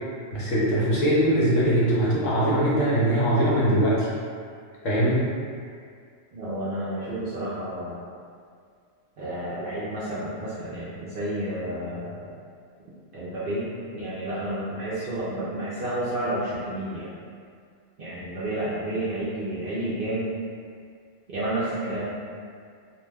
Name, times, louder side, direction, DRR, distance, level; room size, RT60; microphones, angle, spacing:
voice 1, 0.3-4.1 4.8-5.3, right 1 dB, 65° left, -7 dB, 1.0 m, -21 dB
voice 2, 6.3-8.0 9.2-12.3 13.1-13.7 13.9-17.1 18.0-20.3 21.3-22.1, right 1 dB, 60° right, -10 dB, 0.6 m, -30 dB
2.6 x 2.1 x 3.3 m, 2.2 s
omnidirectional pair, 1.4 m